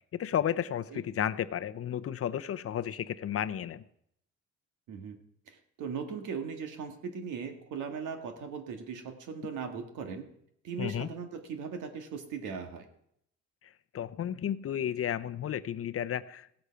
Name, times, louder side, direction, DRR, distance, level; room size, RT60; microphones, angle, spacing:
voice 1, 0.0-3.8 10.8-11.1 13.6-16.5, left 10 dB, 50° left, 14 dB, 0.7 m, -33 dB
voice 2, 5.5-10.3 10.6-12.9, right 6 dB, 90° right, 5 dB, 1.8 m, -38 dB
17.0 x 8.2 x 5.7 m, 0.72 s
cardioid pair, 90°, 30 cm